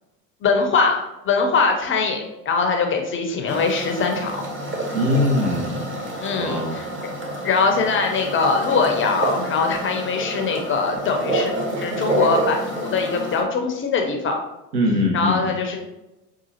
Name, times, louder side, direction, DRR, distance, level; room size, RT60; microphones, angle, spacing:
voice 1, 0.4-4.3 6.2-6.9 7.4-11.5 11.8-14.4 15.1-15.8, left 4 dB, 25° left, 3 dB, 0.6 m, -22 dB
sound 1, 3.5-13.4, right 1 dB, 25° right, 1.0 m, -28 dB
voice 2, 4.9-5.9 6.4-6.8 14.7-15.5, left 1 dB, 70° right, -1 dB, 1.2 m, -22 dB
5.8 x 2.4 x 2.8 m, 0.97 s
hypercardioid pair, 75°, 50 cm